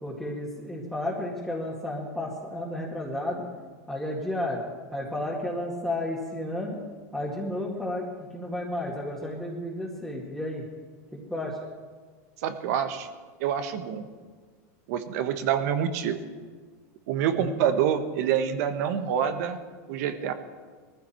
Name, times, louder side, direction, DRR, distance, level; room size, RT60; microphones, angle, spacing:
voice 1, 0.0-3.4 3.9-4.6 4.9-6.8 7.1-8.1 8.3-10.6 11.1-11.6 17.3-17.6, left 1 dB, ahead, -7 dB, 2.1 m, -32 dB
voice 2, 12.4-13.1 13.4-14.0 14.9-16.2 17.1-19.6 19.9-20.3, right 8 dB, 65° right, 8 dB, 1.4 m, -26 dB
19.5 x 14.5 x 4.5 m, 1.5 s
supercardioid pair, 140°, 9 cm